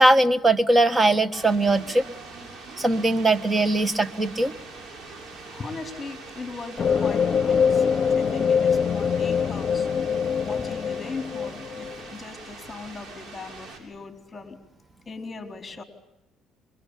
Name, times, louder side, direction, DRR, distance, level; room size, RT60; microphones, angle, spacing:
voice 1, 0.0-2.0 2.8-4.5, right 2 dB, 20° right, 13 dB, 1.5 m, -20 dB
sound 1, 1.3-13.8, right 3 dB, 55° right, 7.5 m, -43 dB
voice 2, 5.5-7.8 8.1-9.9 10.4-14.6 15.1-15.8, left 4 dB, 20° left, 5 dB, 4.3 m, -39 dB
sound 2, 6.8-12.0, left 6 dB, 40° left, 1.2 m, -23 dB
28.0 x 23.5 x 8.4 m, 0.87 s
cardioid pair, 95°, 0 cm